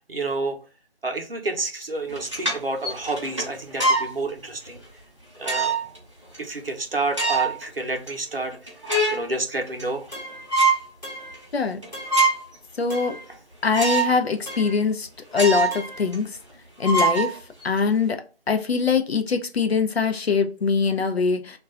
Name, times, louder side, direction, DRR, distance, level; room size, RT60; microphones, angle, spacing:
voice 1, 0.1-0.6 1.0-4.8 5.4-5.8 6.4-8.5 9.1-10.1, right 2 dB, 60° right, 4 dB, 0.7 m, -29 dB
sound 1, 2.1-4.1 4.7-4.8 5.4-6.0 6.3-6.4 7.0-7.6 8.1-8.2 8.5-9.3 9.7-10.2 10.5-10.9 11.3-11.4 11.8-12.6 12.9-13.0 13.7-14.2 14.5-14.6 15.3-15.8 16.1-16.2 16.8-17.8, right 3 dB, 30° right, 0.8 m, -23 dB
sound 2, 10.1-10.6 11.0-11.5 11.9-12.4 12.9-13.3 14.5-14.9 15.7-16.1, equal, 40° left, 1.0 m, -39 dB
voice 2, 12.8-13.2 13.6-15.1 15.3-16.3 16.8-17.3 17.6-18.2 18.5-21.6, left 5 dB, 70° left, 6 dB, 0.5 m, -22 dB
2.4 x 2.3 x 3.6 m, 0.34 s
figure-of-eight pair, 175°, 32 cm